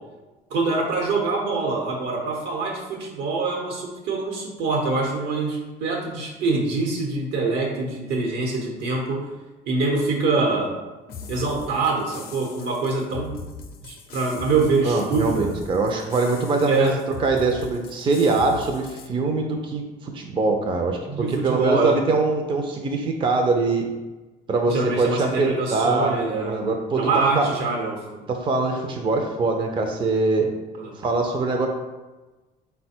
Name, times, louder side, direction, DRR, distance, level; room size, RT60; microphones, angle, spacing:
voice 1, 0.5-9.3 9.7-10.7 11.3-13.4 13.8-15.5 16.6-17.0 21.1-22.0 24.7-26.6 26.9-28.2 30.8-30.9, right 3 dB, 85° right, 0 dB, 1.0 m, -24 dB
sound 1, 11.1-19.1, left 5 dB, 65° left, 0.5 m, -40 dB
voice 2, 14.8-16.9 17.2-23.9 24.5-27.5 28.3-30.5 31.0-31.7, right 3 dB, 30° right, 3 dB, 0.4 m, -23 dB
3.9 x 2.2 x 4.3 m, 1.2 s
cardioid pair, 110°, 17 cm